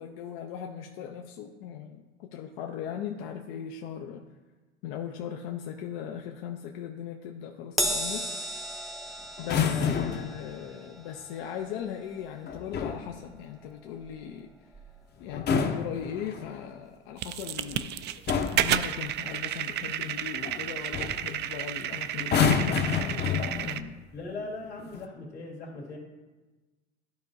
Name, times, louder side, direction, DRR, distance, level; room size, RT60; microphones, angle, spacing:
voice 1, 0.0-4.2 4.8-8.6 9.1-14.7 15.2-18.1 18.5-24.0, left 9 dB, 65° left, 4 dB, 0.7 m, -39 dB
Crash cymbal, 7.8-14.4 14.7-15.0 16.0-16.1, equal, ahead, 0.7 m, -36 dB
sound 1, 9.4-10.4 12.5-13.1 15.2-16.6 17.6-17.9 18.3-18.8 20.4-20.6 20.9-21.2 22.2-23.9 24.8-25.0, left 7 dB, 30° left, 0.8 m, -28 dB
sound 2, 17.2-23.8, right 11 dB, 35° right, 0.4 m, -32 dB
voice 2, 24.1-26.0, left 3 dB, 85° left, -3 dB, 2.2 m, -39 dB
13.0 x 4.5 x 2.7 m, 1.2 s
hypercardioid pair, 85°, 33 cm